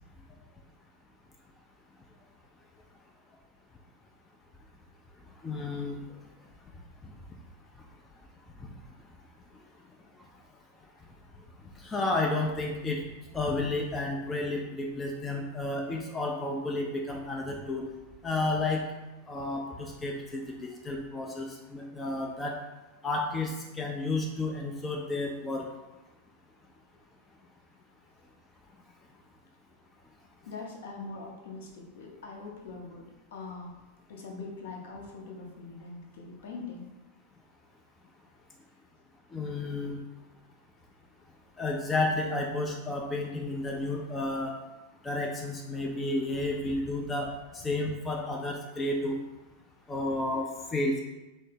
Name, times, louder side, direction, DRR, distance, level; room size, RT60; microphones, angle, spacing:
voice 1, 5.4-6.0 7.0-7.1 8.6-8.7 11.7-13.0 13.3-17.9 18.2-18.8 19.3-22.6 23.0-25.7 39.3-40.0 41.6-44.5 45.0-49.2 49.9-51.0, left 2 dB, 15° left, 0 dB, 0.4 m, -31 dB
voice 2, 30.4-33.7 34.1-36.9, left 3 dB, 55° left, 0 dB, 0.6 m, -42 dB
3.5 x 2.0 x 3.3 m, 1.1 s
figure-of-eight pair, 90°, 0 cm